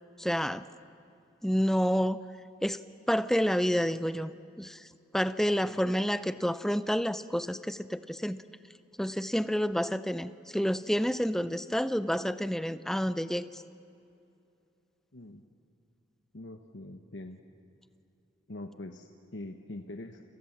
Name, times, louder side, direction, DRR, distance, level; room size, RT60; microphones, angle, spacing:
voice 1, 0.2-0.6 1.4-2.2 2.6-2.8 3.1-4.3 4.6-4.8 5.1-8.4 9.0-13.6, equal, ahead, 13 dB, 0.6 m, -29 dB
voice 2, 15.1-15.4 16.3-17.4 18.5-20.2, left 2 dB, 75° left, 5 dB, 1.2 m, -43 dB
29.5 x 27.5 x 7.4 m, 2.7 s
head